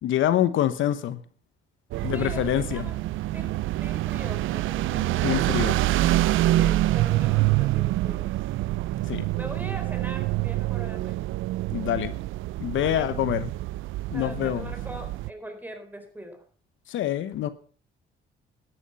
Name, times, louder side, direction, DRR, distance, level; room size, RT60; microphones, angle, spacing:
voice 1, 0.0-1.2 2.0-2.8 5.2-5.9 9.1-9.3 11.7-12.2 12.6-13.5 14.1-14.7 16.9-17.5, left 11 dB, 80° left, 13 dB, 1.1 m, -26 dB
sound 1, 1.9-15.3, right 16 dB, 85° right, 0.5 m, -26 dB
voice 2, 2.1-3.1 3.3-5.5 6.5-8.3 9.3-11.3 12.7-13.1 14.1-16.4, right 1 dB, 10° right, 6 dB, 4.0 m, -41 dB
12.5 x 11.0 x 5.6 m, 0.42 s
cardioid pair, 90°, 20 cm